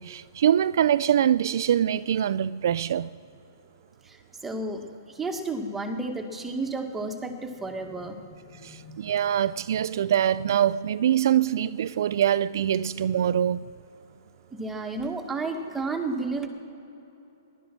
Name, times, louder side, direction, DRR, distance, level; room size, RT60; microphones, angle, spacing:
voice 1, 0.0-3.1 8.6-13.7, right 10 dB, 65° right, 0.3 m, -24 dB
voice 2, 4.4-4.8 5.2-8.2 8.5-8.9 14.5-16.5, right 3 dB, 10° right, 1.7 m, -32 dB
19.0 x 12.0 x 6.2 m
hypercardioid pair, 140°, 2 cm